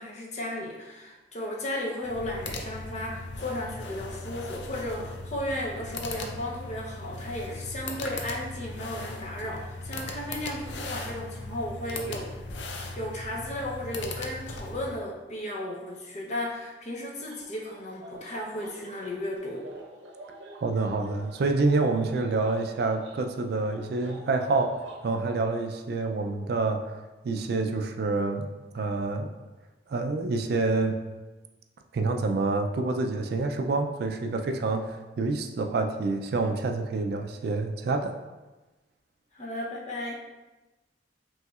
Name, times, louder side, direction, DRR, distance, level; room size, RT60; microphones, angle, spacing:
voice 1, 0.0-12.3 12.6-19.7 39.3-40.2, left 1 dB, 40° left, -2 dB, 0.7 m, -35 dB
sound 1, 2.0-15.0, left 2 dB, 80° left, 0.5 m, -38 dB
sound 2, 17.2-25.0, right 2 dB, 85° right, 0.7 m, -48 dB
voice 2, 20.6-28.5 28.7-29.3 29.9-31.0 31.9-38.1, right 3 dB, 60° right, 5 dB, 0.3 m, -27 dB
5.5 x 3.1 x 2.3 m, 1.1 s
head